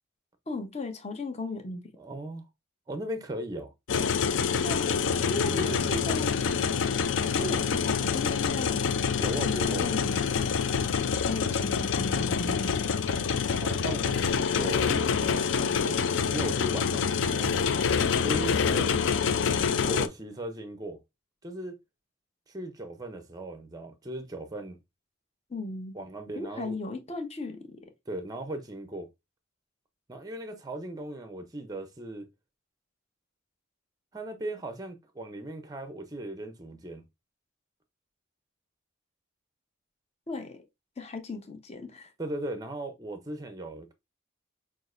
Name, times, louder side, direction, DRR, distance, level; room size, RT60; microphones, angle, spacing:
voice 1, 0.5-1.8 4.6-4.9 5.3-6.4 7.3-8.9 9.3-10.6 11.2-13.2 25.5-26.0 26.3-27.8 40.3-40.6 41.0-42.1, left 2 dB, 30° left, 0.7 m, -36 dB
voice 2, 2.0-2.4 2.9-3.7 5.2-5.9 9.1-9.9 13.6-16.0 16.3-17.6 18.2-19.1 19.8-21.0 21.4-21.8 22.5-24.8 25.9-26.8 28.1-29.1 30.1-32.3 34.1-37.0 42.2-43.9, right 1 dB, 20° right, 0.5 m, -37 dB
sound 1, 3.9-20.1, left 6 dB, 65° left, 0.4 m, -26 dB
6.1 x 2.4 x 2.4 m
head